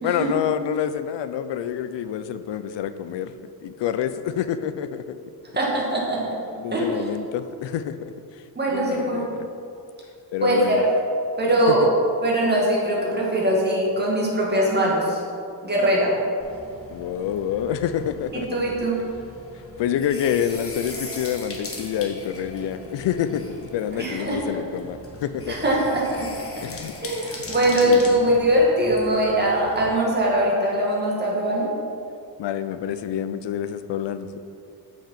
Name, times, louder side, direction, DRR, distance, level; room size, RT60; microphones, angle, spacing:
voice 1, 0.0-3.3 3.6-5.2 6.6-8.1 8.7-9.5 10.3-10.8 16.9-18.6 19.8-23.4 23.7-25.6 26.6-26.9 27.8-28.3 32.4-34.4, left 9 dB, 75° left, 11 dB, 0.6 m, -27 dB
voice 2, 5.5-6.2 6.7-6.9 8.6-9.3 10.4-10.8 11.4-11.9 12.2-15.2 15.6-16.1 18.5-19.0 24.0-24.4 25.5-26.3 27.0-31.7, right 1 dB, 25° right, -4 dB, 2.0 m, -21 dB
sound 1, 16.4-29.9, left 2 dB, 30° left, 1.2 m, -40 dB
6.9 x 6.1 x 5.7 m, 2.5 s
wide cardioid pair, 130°, 43 cm